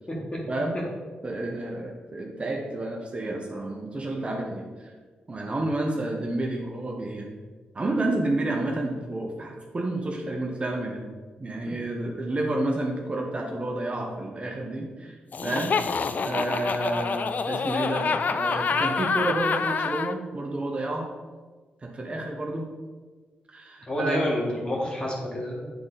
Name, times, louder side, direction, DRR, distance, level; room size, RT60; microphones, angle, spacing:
voice 1, 0.5-0.8 1.2-4.9 5.3-7.3 7.7-11.0 11.4-15.2 15.4-15.8 16.2-21.1 21.8-22.7 23.5-24.3, right 2 dB, 35° right, 1 dB, 0.9 m, -30 dB
Laughter, 15.3-20.1, left 5 dB, 50° left, 0.3 m, -27 dB
voice 2, 23.9-25.7, left 1 dB, 30° left, -3 dB, 2.0 m, -28 dB
8.5 x 3.7 x 4.0 m, 1.4 s
cardioid pair, 80°, 3 cm